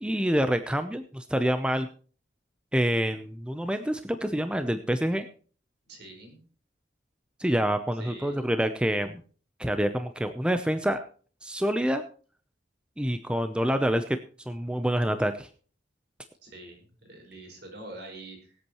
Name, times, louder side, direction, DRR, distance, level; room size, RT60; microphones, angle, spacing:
voice 1, 0.0-1.9 2.7-5.3 7.4-9.2 9.6-11.0 11.4-12.0 13.0-14.2 14.5-15.5, equal, 5° right, 8 dB, 0.6 m, -27 dB
voice 2, 5.9-6.4 8.0-8.4 16.4-18.6, right 2 dB, 60° right, 2 dB, 5.2 m, -45 dB
23.5 x 8.5 x 3.0 m, 0.41 s
head